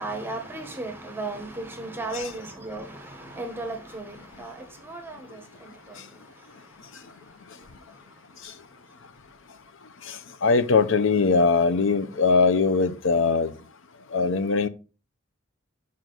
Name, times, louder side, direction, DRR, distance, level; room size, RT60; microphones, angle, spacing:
voice 1, 0.0-6.0, right 2 dB, 10° right, 1.1 m, -35 dB
voice 2, 10.4-13.5 14.1-14.7, left 4 dB, 65° left, 0.6 m, -21 dB
6.3 x 5.5 x 3.9 m
head